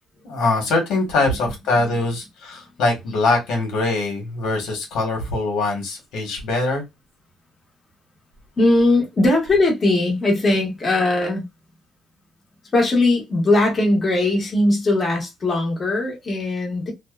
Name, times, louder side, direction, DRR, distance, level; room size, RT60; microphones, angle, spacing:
voice 1, 0.2-6.8, left 2 dB, 90° left, 1.1 m, -22 dB
voice 2, 8.6-11.4 12.7-16.9, left 2 dB, 25° left, 1.0 m, -19 dB
2.6 x 2.1 x 2.3 m
cardioid pair, 155°, 0 cm